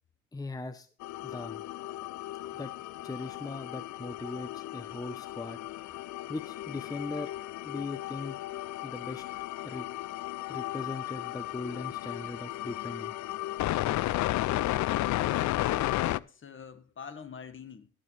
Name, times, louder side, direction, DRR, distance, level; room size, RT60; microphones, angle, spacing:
voice 1, 0.3-0.9 1.2-1.6 2.5-2.7 3.0-5.6 6.3-7.3 7.6-8.4 8.8-9.3 9.6-9.9 10.5-13.1, left 3 dB, 10° left, 0.7 m, -39 dB
sound 1, 1.0-16.2, left 16 dB, 70° left, 0.4 m, -34 dB
voice 2, 15.2-17.9, left 6 dB, 40° left, 1.5 m, -45 dB
12.5 x 12.0 x 3.2 m
cardioid pair, 90°, 30 cm